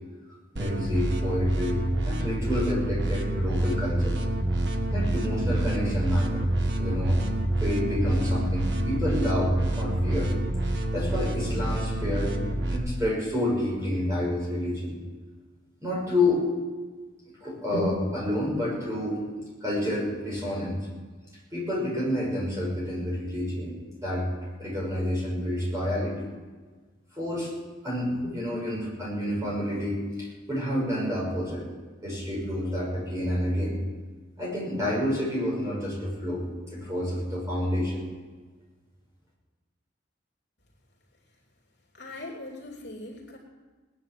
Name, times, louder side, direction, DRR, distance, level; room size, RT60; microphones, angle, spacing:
voice 1, 0.5-4.1 4.9-6.5 6.8-7.2 7.6-10.3 10.9-12.3 12.7-14.9 15.8-16.5 17.4-19.2 19.6-20.8 21.5-23.7 24.0-24.3 24.6-26.3 27.1-27.5 27.8-31.6 32.0-33.8 34.4-36.4 36.7-38.0, left 1 dB, 15° right, -5 dB, 6.1 m, -28 dB
sound 1, 0.6-12.8, right 1 dB, 65° right, 1.5 m, -27 dB
voice 2, 41.9-43.4, left 2 dB, 65° left, -2 dB, 2.9 m, -40 dB
18.5 x 9.9 x 7.6 m, 1.4 s
head